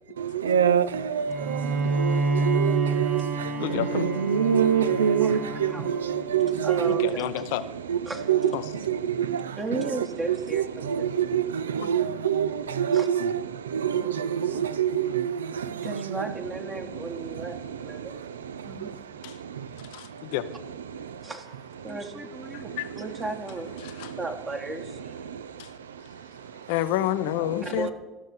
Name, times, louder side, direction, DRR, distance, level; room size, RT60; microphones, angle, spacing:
voice 1, 0.2-7.1 7.9-16.3 16.7-19.8 20.9-21.3 21.8-21.9 22.5-22.8 23.8-24.2 25.2-26.7, right 8 dB, 85° right, 0.4 m, -27 dB
Bowed string instrument, 1.3-6.7, right 3 dB, 70° right, 1.5 m, -29 dB
voice 2, 3.6-4.1 6.9-7.6 8.5-8.7 14.0-14.1 19.2-19.4 20.3-20.4 22.5-22.9 23.8-24.2 25.6-25.7 26.7-27.9, left 13 dB, 70° left, 0.5 m, -29 dB
voice 3, 5.2-5.8 6.6-7.3 8.1-8.3 9.6-11.1 12.0-12.2 12.9-13.1 15.8-18.2 18.6-18.9 21.2-21.5 21.8-23.7 24.1-25.4 27.6-27.9, right 2 dB, 30° right, 1.3 m, -35 dB
13.5 x 6.2 x 5.4 m
hypercardioid pair, 70°, 0 cm